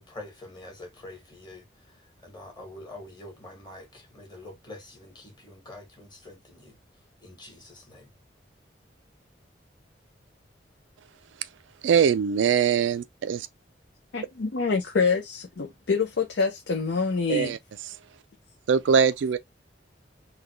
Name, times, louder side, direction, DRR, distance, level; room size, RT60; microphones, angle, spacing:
voice 1, 0.0-6.8 7.2-8.1, left 2 dB, 25° left, 1.6 m, -46 dB
voice 2, 11.8-13.5 17.3-17.6 18.7-19.4, right 7 dB, 85° right, 0.3 m, -22 dB
voice 3, 14.1-17.6, left 4 dB, 75° left, 0.6 m, -26 dB
3.9 x 2.3 x 3.2 m
head